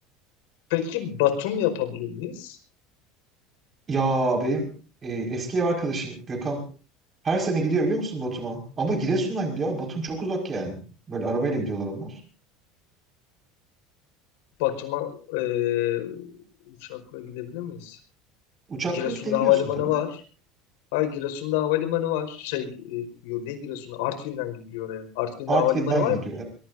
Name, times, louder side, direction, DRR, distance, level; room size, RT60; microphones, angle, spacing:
voice 1, 0.7-2.6 14.6-16.3 16.7-18.0 18.9-20.2 20.9-26.2, left 13 dB, 85° left, 8 dB, 5.0 m, -27 dB
voice 2, 3.9-4.7 5.0-6.6 7.2-10.8 11.1-12.2 18.7-19.5 19.9-20.0 25.5-26.4, right 3 dB, 20° right, 2 dB, 5.4 m, -27 dB
23.5 x 22.5 x 2.7 m, 0.38 s
cardioid pair, 165°, 0 cm